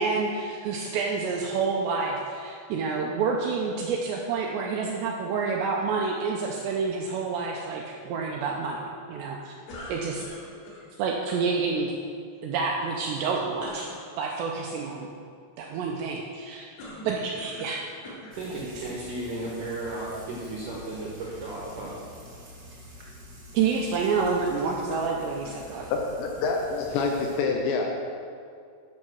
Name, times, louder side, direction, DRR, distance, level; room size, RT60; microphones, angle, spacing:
voice 1, 0.0-9.5 9.9-10.2 11.0-11.9 12.4-13.9 14.2-15.1 15.6-16.7 17.0-17.8 18.6-19.0 23.5-25.9, right 5 dB, 90° right, -1 dB, 2.5 m, -28 dB
sound 1, 9.7-10.9 13.6-14.0 16.8-17.8 18.0-18.4 19.2-19.3 24.9-25.8, left 1 dB, 60° left, 3.7 m, -43 dB
Frying (food), 18.3-27.4, equal, 35° right, 1.5 m, -47 dB
voice 2, 18.4-22.0, right 2 dB, 70° right, -5 dB, 2.0 m, -35 dB
voice 3, 25.9-27.9, left 4 dB, 80° left, 1 dB, 2.7 m, -27 dB
10.5 x 6.4 x 6.2 m, 2.3 s
omnidirectional pair, 5.7 m